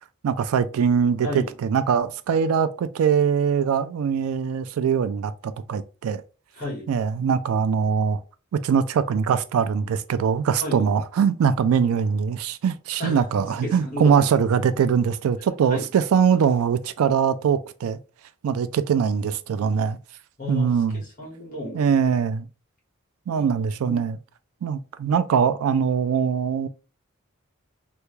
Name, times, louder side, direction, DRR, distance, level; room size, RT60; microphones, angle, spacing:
voice 1, 0.2-6.2 6.9-8.2 8.5-18.0 18.4-20.0 20.5-21.0 21.7-22.5 23.3-24.2 24.6-26.7, right 7 dB, 90° right, 0.3 m, -22 dB
voice 2, 6.6-6.9 10.6-10.9 13.0-13.2 13.6-14.3 15.7-15.8 20.4-21.8 23.3-23.5 23.9-24.0, left 1 dB, 40° left, 1.5 m, -33 dB
3.4 x 2.2 x 3.1 m
head